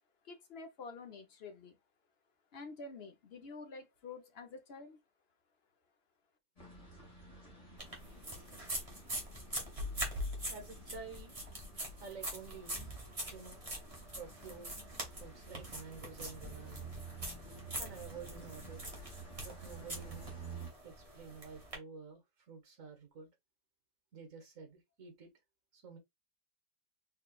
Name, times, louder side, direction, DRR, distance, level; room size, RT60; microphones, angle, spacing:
voice 1, 0.2-1.8 2.5-5.0, left 4 dB, 45° left, 0.9 m, -48 dB
sound 1, 6.6-20.7, right 5 dB, 20° left, 2.0 m, -52 dB
sound 2, 7.8-21.7, equal, 20° right, 1.5 m, -43 dB
voice 2, 10.5-11.3 12.0-12.8 13.3-13.6 14.2-14.8 15.2-16.9 17.8-18.9 19.4-20.3 20.8-23.3 24.1-25.3 25.7-26.0, right 5 dB, 50° right, 1.7 m, -50 dB
4.4 x 4.0 x 2.3 m
omnidirectional pair, 1.8 m